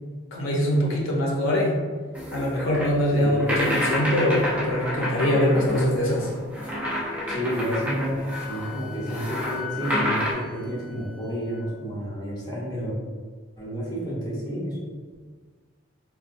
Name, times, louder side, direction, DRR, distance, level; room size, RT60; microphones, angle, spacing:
voice 1, 0.3-1.8 2.3-6.3, equal, 75° left, -2 dB, 0.6 m, -23 dB
sound 1, 2.1-10.3, equal, 5° right, 0.4 m, -29 dB
voice 2, 3.1-3.5 7.3-13.0 13.6-14.8 15.1-15.3, equal, 20° left, -6 dB, 0.8 m, -30 dB
Wind instrument woodwind instrument, 8.2-11.7, left 13 dB, 40° right, 0.8 m, -40 dB
3.9 x 2.2 x 2.5 m, 1.5 s
head